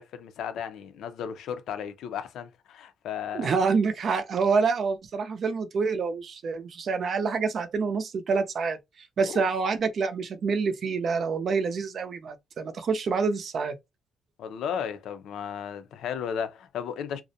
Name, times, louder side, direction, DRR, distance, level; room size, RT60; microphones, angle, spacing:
voice 1, 0.0-3.5 9.3-9.4 14.4-17.2, left 8 dB, 80° left, 0.5 m, -34 dB
voice 2, 3.3-13.8, right 5 dB, 55° right, 0.5 m, -27 dB
2.4 x 2.1 x 2.7 m
cardioid pair, 90°, 0 cm